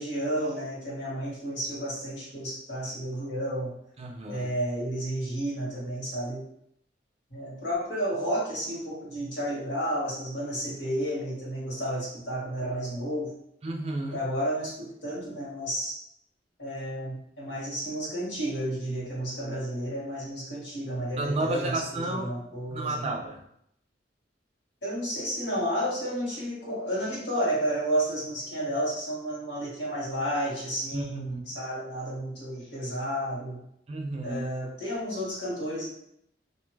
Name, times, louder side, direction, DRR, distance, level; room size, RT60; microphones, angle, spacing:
voice 1, 0.0-3.8 4.3-6.5 7.3-13.3 14.1-16.0 16.6-23.0 24.8-33.6 34.2-35.9, equal, 85° left, -7 dB, 1.4 m, -31 dB
voice 2, 4.0-4.5 13.6-14.2 21.2-22.3 22.7-23.4 30.9-31.4 33.9-34.4, right 2 dB, 35° right, 3 dB, 0.4 m, -31 dB
2.5 x 2.3 x 3.1 m, 0.72 s
head